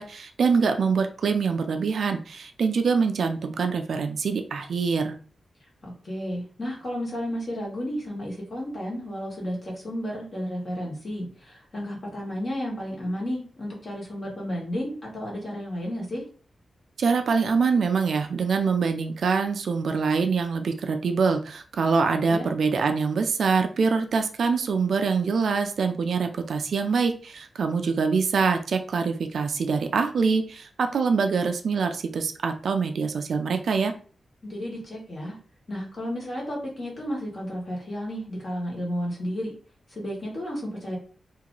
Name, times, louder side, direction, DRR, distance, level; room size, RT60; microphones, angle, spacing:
voice 1, 0.0-5.1 17.0-33.9, right 5 dB, 65° right, 6 dB, 0.4 m, -24 dB
voice 2, 5.8-16.2 22.3-22.5 34.4-35.4 35.7-39.5 39.9-41.0, equal, 40° left, -3 dB, 1.4 m, -32 dB
2.9 x 2.4 x 3.8 m, 0.41 s
wide cardioid pair, 165°, 0 cm